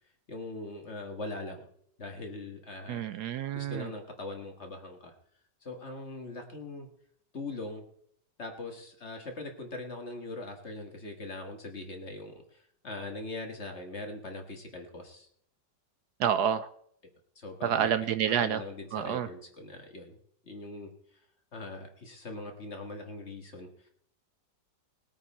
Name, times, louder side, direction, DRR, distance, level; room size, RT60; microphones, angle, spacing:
voice 1, 0.3-1.7 2.0-3.0 3.5-5.1 5.6-6.9 7.3-7.9 8.4-15.3 17.4-17.9 18.2-20.2 20.4-20.9 21.5-23.7, left 2 dB, 40° left, 3 dB, 1.9 m, -41 dB
voice 2, 2.9-3.9 16.2-16.7 17.6-18.6 18.9-19.3, right 9 dB, 70° right, 12 dB, 1.1 m, -28 dB
20.0 x 9.0 x 4.3 m, 0.66 s
omnidirectional pair, 1.9 m